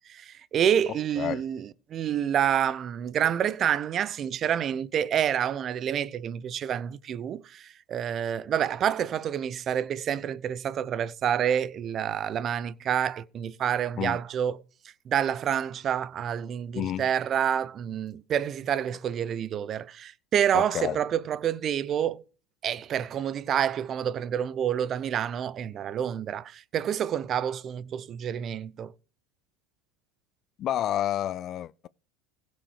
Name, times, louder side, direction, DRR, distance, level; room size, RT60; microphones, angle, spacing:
voice 1, 0.1-14.6 15.1-22.2 22.6-28.9, right 9 dB, 40° right, 0.7 m, -28 dB
voice 2, 0.9-1.4 14.0-14.2 16.7-17.1 20.5-21.0 30.6-31.9, left 11 dB, 45° left, 0.4 m, -30 dB
16.0 x 6.4 x 4.9 m
supercardioid pair, 110°, 0 cm